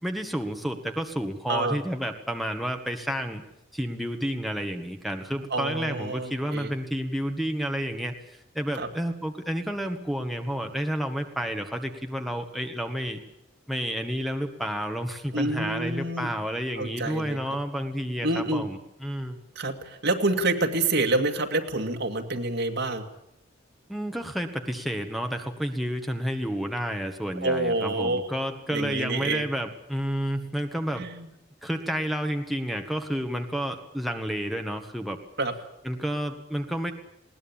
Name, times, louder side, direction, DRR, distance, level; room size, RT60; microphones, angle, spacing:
voice 1, 0.0-3.4 3.7-13.2 13.7-19.4 23.9-31.0 31.6-35.2 35.8-36.9, equal, ahead, 3 dB, 1.7 m, -30 dB
voice 2, 5.5-6.7 8.8-8.9 15.3-16.3 16.8-17.4 18.2-18.7 19.6-23.0 27.4-28.3 28.7-29.4 31.0-31.3 35.4-35.5, right 2 dB, 65° right, 5 dB, 2.2 m, -27 dB
20.5 x 18.5 x 8.9 m, 0.79 s
head